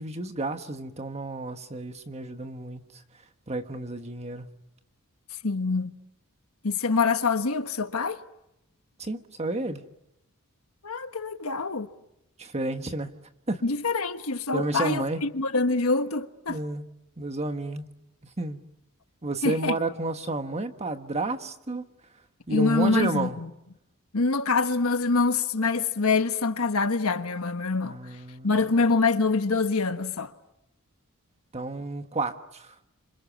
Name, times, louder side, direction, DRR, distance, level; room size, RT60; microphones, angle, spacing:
voice 1, 0.0-3.0 3.5-4.5 9.0-9.8 12.4-13.1 13.5-13.6 14.5-15.3 16.5-16.8 17.2-17.9 18.4-18.6 19.2-21.8 22.5-23.4 27.8-28.8 31.5-32.7, right 2 dB, 30° right, 1.5 m, -31 dB
voice 2, 5.4-5.9 6.6-8.2 10.8-11.9 13.6-16.6 19.4-19.8 22.5-23.5 24.1-28.0 28.4-30.3, left 4 dB, 70° left, 1.4 m, -25 dB
29.0 x 27.0 x 7.2 m
head